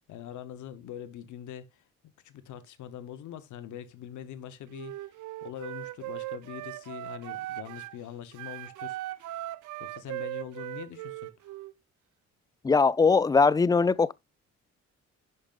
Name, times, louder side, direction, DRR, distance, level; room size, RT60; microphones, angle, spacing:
voice 1, 0.1-5.1 5.4-9.4 9.8-11.6, left 10 dB, 75° left, 0.9 m, -43 dB
Wind instrument woodwind instrument, 4.7-8.0 8.3-11.7, right 16 dB, 80° right, 0.6 m, -38 dB
voice 2, 12.6-14.1, left 4 dB, 15° left, 0.3 m, -21 dB
11.0 x 5.2 x 2.4 m
cardioid pair, 90°, 30 cm